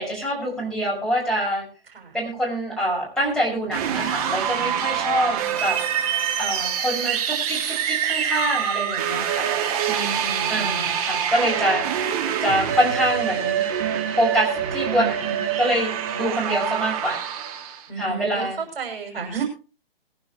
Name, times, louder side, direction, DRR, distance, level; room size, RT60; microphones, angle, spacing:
voice 1, 0.0-1.6 2.1-5.8 6.4-9.5 10.5-11.8 12.4-13.6 14.2-17.2 18.0-18.6, equal, ahead, -5 dB, 6.0 m, -25 dB
sound 1, 3.7-17.8, right 9 dB, 35° right, 2.3 m, -25 dB
voice 2, 5.0-5.6 9.9-11.0 17.9-18.5 18.8-19.4, right 5 dB, 70° right, 2 dB, 6.3 m, -32 dB
22.0 x 10.5 x 3.1 m, 0.33 s
figure-of-eight pair, 130°, 30 cm